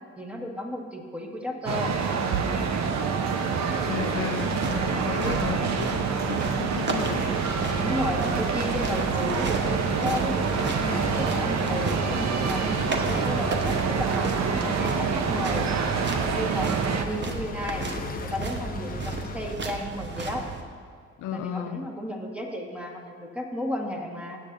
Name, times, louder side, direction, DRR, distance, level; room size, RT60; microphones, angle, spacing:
voice 1, 0.2-1.9 4.9-5.9 7.8-15.7 15.9-17.8 18.2-20.5 21.3-24.4, left 1 dB, 5° right, 0 dB, 1.5 m, -33 dB
sound 1, 1.7-17.0, right 5 dB, 60° right, 0.9 m, -27 dB
voice 2, 3.8-7.3 21.2-21.9, left 10 dB, 90° left, 9 dB, 0.6 m, -34 dB
sound 2, 3.9-20.6, right 4 dB, 35° right, 1.1 m, -35 dB
sound 3, 7.0-19.6, left 3 dB, 30° left, 0.6 m, -38 dB
15.5 x 8.5 x 2.6 m, 2.1 s
cardioid pair, 90°, 30 cm